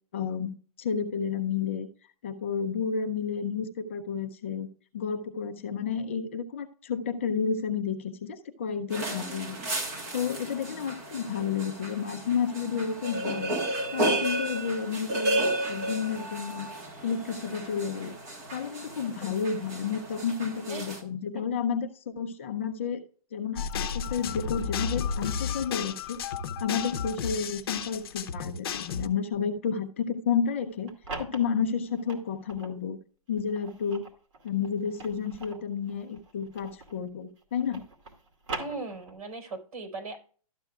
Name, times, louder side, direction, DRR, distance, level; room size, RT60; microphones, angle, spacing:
voice 1, 0.1-1.9 2.2-4.7 4.9-9.6 10.1-13.6 13.9-15.4 15.7-16.7 17.0-18.2 18.5-23.0 23.3-26.2 26.6-33.0 33.3-34.0 34.4-37.8, left 6 dB, 20° left, 5 dB, 0.4 m, -31 dB
sound 1, 8.9-21.0, right 1 dB, 25° right, 1.4 m, -33 dB
sound 2, 23.6-29.1, left 6 dB, 40° left, 0.8 m, -32 dB
sound 3, 30.6-32.8 33.3-37.1 37.4-39.4, right 3 dB, 55° right, 2.4 m, -42 dB
voice 2, 38.6-40.2, right 3 dB, 80° right, 4 dB, 4.3 m, -38 dB
12.5 x 7.7 x 2.3 m, 0.41 s
hypercardioid pair, 180°, 19 cm